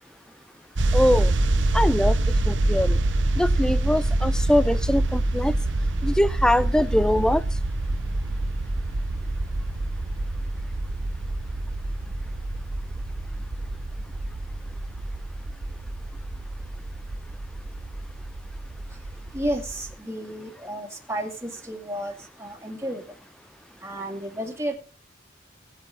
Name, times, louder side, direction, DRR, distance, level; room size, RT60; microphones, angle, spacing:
sound 1, 0.7-19.9, right 2 dB, 70° right, 0.9 m, -26 dB
voice 1, 0.9-1.3 1.7-2.2 2.5-3.0 3.4-5.5 6.0-7.4, left 1 dB, 5° left, 16 dB, 0.5 m, -22 dB
voice 2, 19.3-22.1 22.4-23.0 23.8-24.8, right 1 dB, 15° right, 1 dB, 2.4 m, -32 dB
19.5 x 8.2 x 3.7 m, 0.37 s
head